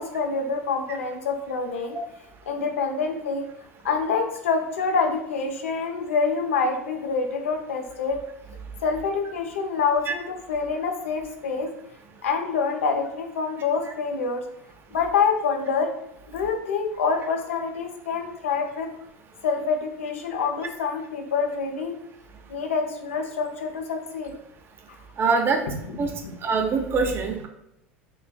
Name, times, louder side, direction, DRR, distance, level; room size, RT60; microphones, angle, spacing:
voice 1, 0.0-2.0 2.5-3.5 3.8-8.2 8.8-11.7 12.2-14.4 14.9-15.9 16.3-18.9 19.4-22.0 22.5-24.3 25.8-25.9 26.2-26.3, left 5 dB, 75° left, 4 dB, 0.5 m, -26 dB
voice 2, 25.2-25.6 26.0-26.1 26.4-27.5, right 4 dB, 35° right, 4 dB, 0.6 m, -23 dB
3.1 x 3.1 x 2.2 m, 0.80 s
figure-of-eight pair, 75°, 7 cm